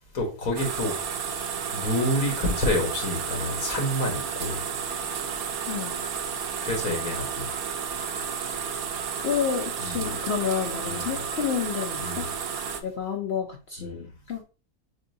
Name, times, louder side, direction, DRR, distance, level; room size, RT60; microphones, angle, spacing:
voice 1, 0.1-0.9 1.7-4.6 6.6-7.5 9.8-10.1 10.8-11.2 12.0-12.2 13.8-14.0, left 1 dB, 70° left, 1.8 m, -28 dB
sound 1, 0.6-12.8, right 7 dB, 75° right, 1.2 m, -32 dB
voice 2, 5.7-6.0 9.2-12.3 12.8-14.4, left 7 dB, 55° left, 0.8 m, -30 dB
7.2 x 2.8 x 2.6 m
omnidirectional pair, 1.6 m